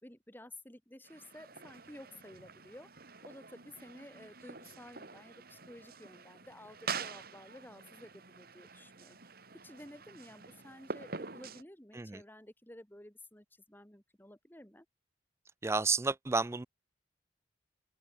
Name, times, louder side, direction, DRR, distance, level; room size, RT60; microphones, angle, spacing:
voice 1, 0.0-2.9 3.2-14.9, left 1 dB, 10° left, 2.9 m, -53 dB
sound 1, 1.0-11.6, right 5 dB, 55° right, 3.5 m, -46 dB
voice 2, 15.6-16.7, right 4 dB, 15° right, 0.4 m, -31 dB
open air
head